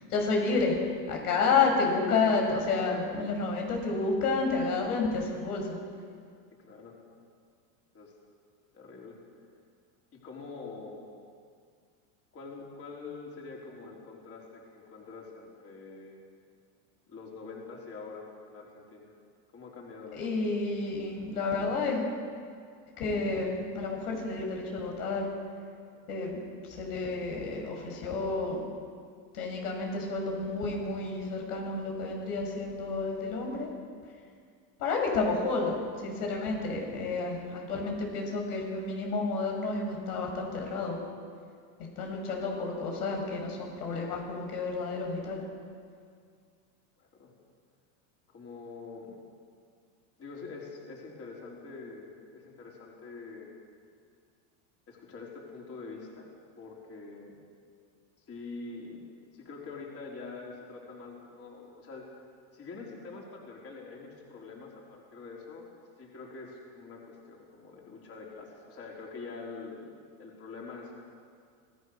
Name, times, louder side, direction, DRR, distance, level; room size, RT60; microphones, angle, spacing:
voice 1, 0.1-0.8 1.1-5.8 20.1-22.1 23.0-25.2 26.1-28.6 29.3-33.7 34.8-41.0 42.0-45.4, left 3 dB, 90° left, 1 dB, 6.1 m, -30 dB
voice 2, 6.6-6.9 7.9-8.1 8.7-9.2 10.1-11.0 12.3-16.2 17.1-19.1 19.5-20.2 25.9-26.0 47.0-47.3 48.3-49.2 50.2-53.6 54.9-56.3 56.6-57.4 58.3-59.0 59.3-62.1 62.5-65.7 66.0-70.9, left 4 dB, 30° left, -2 dB, 4.4 m, -45 dB
26.5 x 16.5 x 6.6 m, 2.2 s
supercardioid pair, 125°, 44 cm